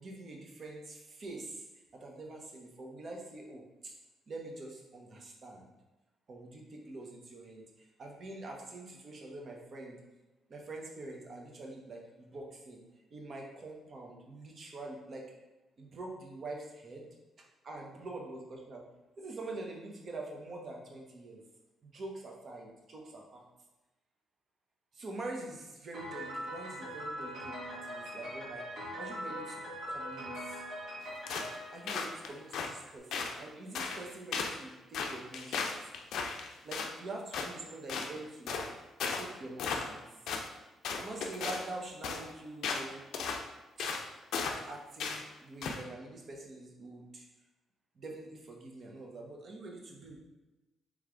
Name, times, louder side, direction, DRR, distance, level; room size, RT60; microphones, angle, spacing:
voice 1, 0.0-1.6 1.9-4.0 4.3-5.7 6.3-10.1 10.5-12.8 13.1-15.4 15.8-17.1 17.6-18.9 19.2-21.4 21.8-23.4 24.9-29.6 29.9-30.6 31.7-35.8 36.6-38.7 39.2-40.1 40.9-43.1 43.8-44.0 44.4-47.3 47.9-50.2, right 2 dB, 50° right, 0 dB, 0.9 m, -45 dB
Piano, 25.9-32.8, equal, 70° right, 1.5 m, -42 dB
sound 1, 31.3-31.6 31.9-32.7 33.1-33.4 33.7-34.0 34.3-34.6 34.9-36.9 37.3-37.5 37.9-38.1 38.5-38.7 39.0-39.3 39.6-40.0 40.3-40.5 40.8-41.7 42.0-42.2 42.6-42.9 43.1-43.4 43.8-44.0 44.3-44.6 45.0-45.2 45.6-45.8, left 5 dB, 75° left, 0.4 m, -35 dB
3.5 x 3.2 x 3.7 m, 1.1 s
cardioid pair, 90°, 0 cm